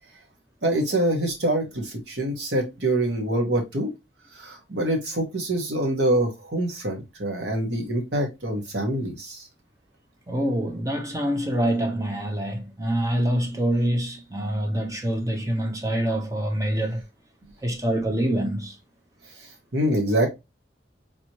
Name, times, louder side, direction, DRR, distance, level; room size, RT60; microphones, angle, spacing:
voice 1, 0.6-3.9 4.3-9.4 19.7-20.3, right 1 dB, 90° right, 1.5 m, -25 dB
voice 2, 10.3-17.0 17.6-18.7, right 1 dB, 20° right, 0.9 m, -25 dB
4.0 x 3.0 x 3.0 m
head